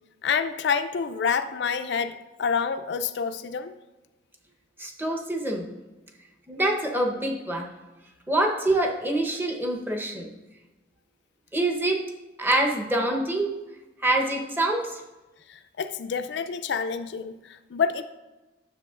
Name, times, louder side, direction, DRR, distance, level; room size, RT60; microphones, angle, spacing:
voice 1, 0.2-3.7 15.5-18.0, left 6 dB, 70° left, 9 dB, 0.4 m, -28 dB
voice 2, 4.8-5.7 6.5-7.7 8.3-10.3 11.5-12.0 12.4-13.5 14.0-15.0, right 1 dB, 10° right, 1 dB, 0.8 m, -25 dB
9.7 x 6.9 x 2.4 m, 1.1 s
head